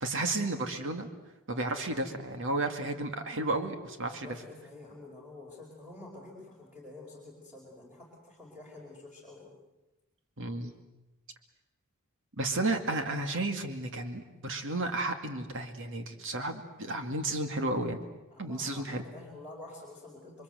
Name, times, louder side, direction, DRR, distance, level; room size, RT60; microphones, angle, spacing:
voice 1, 0.0-1.1 1.5-4.4 10.4-10.7 12.4-18.1 18.4-19.1, right 2 dB, 60° right, 6 dB, 2.3 m, -32 dB
voice 2, 4.1-9.5 18.3-20.4, left 2 dB, 5° right, -3 dB, 4.8 m, -48 dB
28.5 x 23.5 x 7.9 m, 1.0 s
head